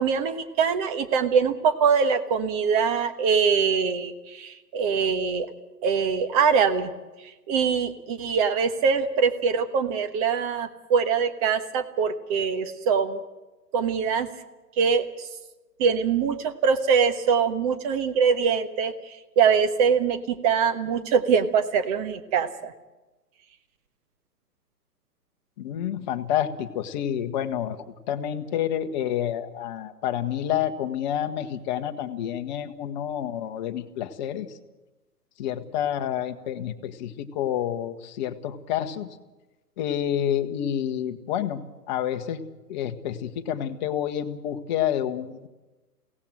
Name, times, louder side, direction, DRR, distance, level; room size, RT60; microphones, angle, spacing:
voice 1, 0.0-5.5 5.8-6.9 7.5-13.2 13.7-14.3 14.8-15.3 15.8-22.7, right 6 dB, 25° right, 10 dB, 1.2 m, -23 dB
voice 2, 25.6-27.8 28.1-34.5 35.4-39.1 39.8-42.4 42.7-45.5, left 10 dB, 30° left, 7 dB, 1.2 m, -29 dB
23.0 x 17.0 x 7.7 m, 1.1 s
figure-of-eight pair, 130°, 48 cm